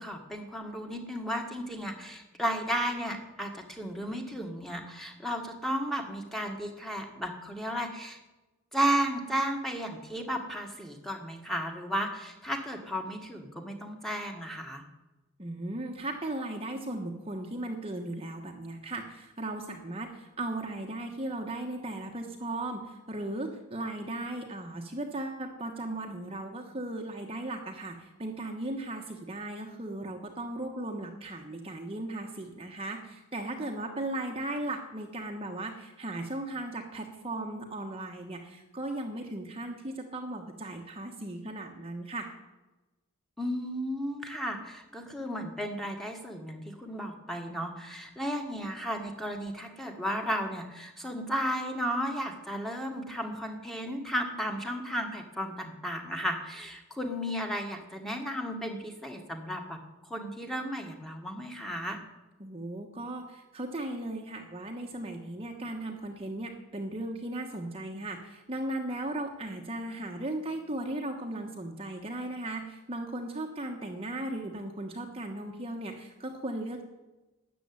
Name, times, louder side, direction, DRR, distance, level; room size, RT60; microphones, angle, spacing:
voice 1, 0.0-8.2 8.7-14.8 43.4-62.0, equal, ahead, 3 dB, 1.7 m, -34 dB
voice 2, 15.4-42.3 62.4-76.8, right 1 dB, 25° right, 2 dB, 1.2 m, -37 dB
13.0 x 8.2 x 9.6 m, 1.1 s
head